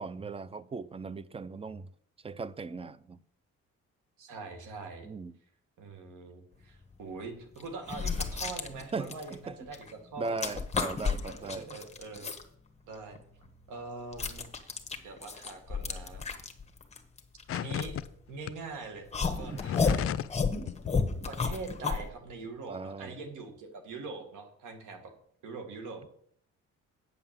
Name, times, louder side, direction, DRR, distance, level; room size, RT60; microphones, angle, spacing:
voice 1, 0.0-1.9 2.2-3.2 5.0-5.3 8.7-9.6 10.2-11.8 19.5-19.7 22.7-23.2, right 4 dB, 20° right, 0.5 m, -38 dB
voice 2, 4.2-5.1 5.8-10.6 11.2-12.3 12.9-13.2 13.7-14.7 15.0-16.2 17.5-18.0 18.3-20.0 21.3-25.1 25.4-26.1, right 4 dB, 85° right, 2.0 m, -43 dB
sound 1, 6.8-6.9 7.6-9.9 10.2-12.4 12.9-18.5 19.1-22.1, left 5 dB, 20° left, 1.3 m, -32 dB
sound 2, 17.5-18.0 18.4-18.5 19.4-20.4 20.7-20.9, left 10 dB, 50° left, 0.5 m, -34 dB
8.9 x 5.6 x 7.3 m
cardioid pair, 90°, 30 cm